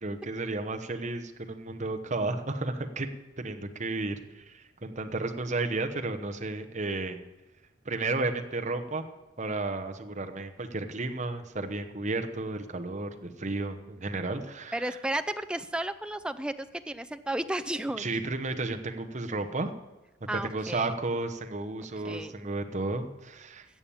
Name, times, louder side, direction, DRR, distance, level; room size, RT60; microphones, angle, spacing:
voice 1, 0.0-3.1 3.4-7.2 7.8-9.1 9.4-15.0 18.0-19.7 20.3-23.7, right 2 dB, 35° right, 6 dB, 1.0 m, -33 dB
voice 2, 14.7-18.1 20.3-20.9 22.0-22.3, right 1 dB, 5° right, 9 dB, 0.4 m, -33 dB
14.5 x 7.1 x 8.6 m, 1.0 s
head